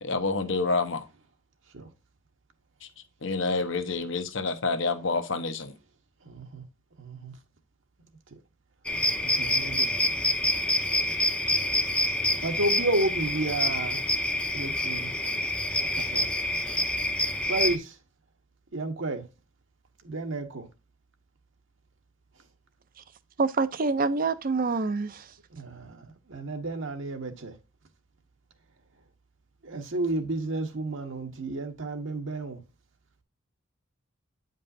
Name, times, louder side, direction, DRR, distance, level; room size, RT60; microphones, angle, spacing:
voice 1, 0.0-1.1 2.8-2.9 3.2-5.7, left 3 dB, 65° left, 0.9 m, -28 dB
voice 2, 6.2-6.6 7.0-7.3 9.2-10.0 12.4-14.0 14.5-15.1 15.8-16.3 17.5-17.9 18.7-19.2 20.0-20.7 25.5-27.5 29.6-32.6, right 2 dB, 70° right, 1.1 m, -31 dB
sound 1, 8.9-17.8, left 1 dB, 5° left, 0.6 m, -27 dB
voice 3, 23.4-25.3, right 4 dB, 45° right, 0.5 m, -26 dB
8.9 x 5.3 x 2.6 m
head